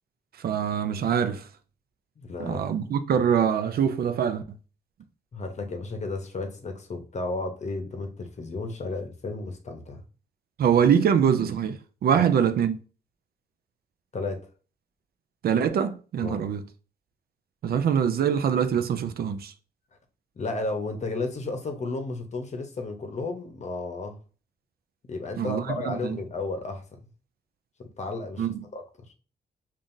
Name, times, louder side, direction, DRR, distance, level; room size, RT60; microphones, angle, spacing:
voice 1, 0.4-1.4 2.4-4.4 10.6-11.8 12.0-12.8 15.4-16.6 17.6-19.5 25.4-26.2 28.4-28.6, right 8 dB, 65° right, 0.4 m, -24 dB
voice 2, 2.2-2.6 5.3-10.0 12.2-12.3 14.1-14.5 16.2-16.4 20.4-24.2 25.1-27.0 27.8-28.5 28.7-28.8, left 3 dB, 40° left, 0.8 m, -33 dB
5.4 x 2.5 x 2.6 m
cardioid pair, 90°, 17 cm